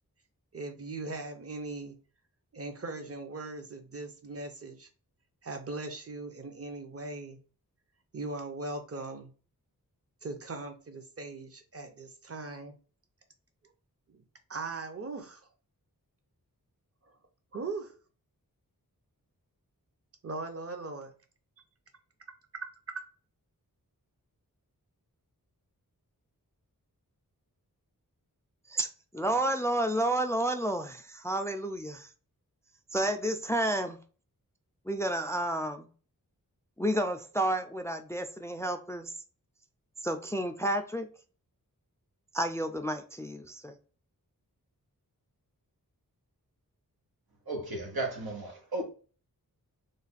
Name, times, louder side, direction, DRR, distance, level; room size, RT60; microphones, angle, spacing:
voice 1, 0.5-1.9 2.5-4.9 5.4-7.4 8.1-9.3 10.2-12.7 14.5-15.4 17.5-17.9 20.2-21.1 22.9-23.0, right 3 dB, 40° right, 0.7 m, -39 dB
voice 2, 29.1-32.1 32.9-34.0 34.9-35.9 36.8-39.1 40.0-41.1 42.3-43.8, right 1 dB, 10° left, 0.4 m, -30 dB
voice 3, 47.5-48.8, right 2 dB, 90° right, 1.0 m, -34 dB
3.2 x 2.2 x 4.0 m
wide cardioid pair, 55°, 36 cm